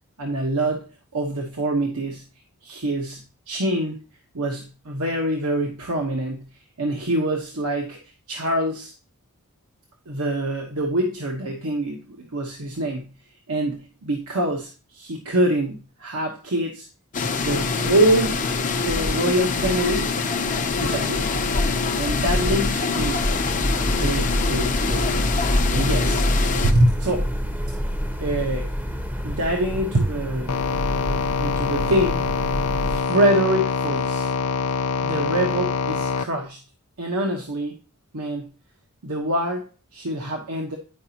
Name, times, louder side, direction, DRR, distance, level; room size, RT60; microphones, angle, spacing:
voice 1, 0.2-0.9 1.1-2.2 2.6-4.0 4.3-6.5 6.8-8.0 8.3-8.9 10.1-13.1 13.5-16.9 17.4-18.4 18.9-20.1 20.8-21.3 21.9-23.3 23.7-25.1 25.7-26.2 26.6-27.3 28.2-28.7 29.2-30.6 31.4-32.2 32.9-34.3 35.0-36.6 37.0-37.7 38.1-38.5 39.0-39.7 39.9-40.8, right 1 dB, 90° right, 1 dB, 1.1 m, -25 dB
sound 1, 17.1-26.7, left 4 dB, 35° left, 0.6 m, -24 dB
sound 2, 22.9-33.0, equal, 10° right, 0.7 m, -27 dB
sound 3, 30.5-36.3, left 5 dB, 75° left, 0.4 m, -25 dB
9.7 x 5.0 x 2.8 m, 0.35 s
head